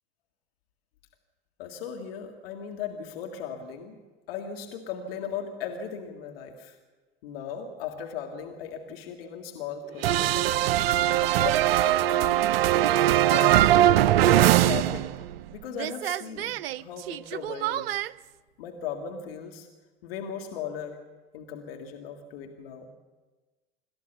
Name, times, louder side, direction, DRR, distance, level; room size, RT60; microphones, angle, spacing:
voice 1, 1.6-4.0 4.3-6.8 7.2-10.8 11.2-12.4 13.1-15.1 15.5-18.0 18.6-19.7 20.0-21.0 21.3-22.9, left 7 dB, 65° left, 3 dB, 1.9 m, -37 dB
sound 1, 10.0-15.5 15.7-18.1, right 13 dB, 65° right, 0.5 m, -22 dB
26.0 x 14.0 x 7.1 m, 1.3 s
figure-of-eight pair, 70°, 32 cm